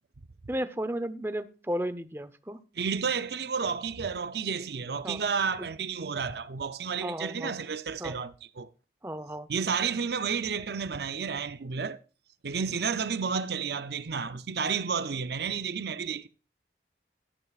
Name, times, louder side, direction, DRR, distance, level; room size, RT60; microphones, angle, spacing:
voice 1, 0.5-2.6 5.0-5.2 5.6-5.7 7.0-7.6 8.0-8.2 9.0-9.5, right 1 dB, 15° right, 0.7 m, -34 dB
voice 2, 2.8-8.7 9.5-12.0 12.4-16.3, right 6 dB, 70° right, 0.6 m, -31 dB
15.0 x 13.0 x 2.4 m
head